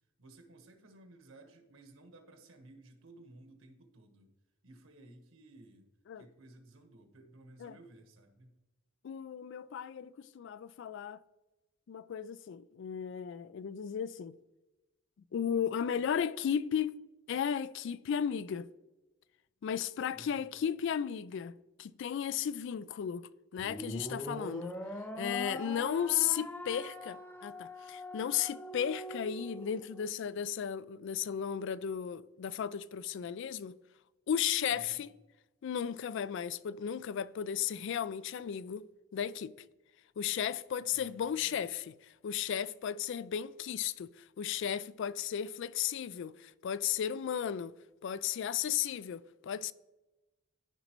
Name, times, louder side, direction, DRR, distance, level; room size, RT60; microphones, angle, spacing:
voice 1, 0.2-4.3 4.6-5.9 6.2-8.5 20.1-20.5 34.7-35.0 40.8-41.6, right 2 dB, 75° right, 1.3 m, -57 dB
voice 2, 9.0-11.2 11.9-14.4 15.3-16.9 17.3-18.7 19.6-24.7 25.2-33.8 34.3-35.1 35.6-38.9 39.1-39.5 40.2-47.7 48.0-49.7, left 8 dB, 60° left, 0.3 m, -35 dB
sound 1, 23.6-30.1, equal, 10° left, 0.5 m, -42 dB
13.5 x 5.2 x 3.0 m
head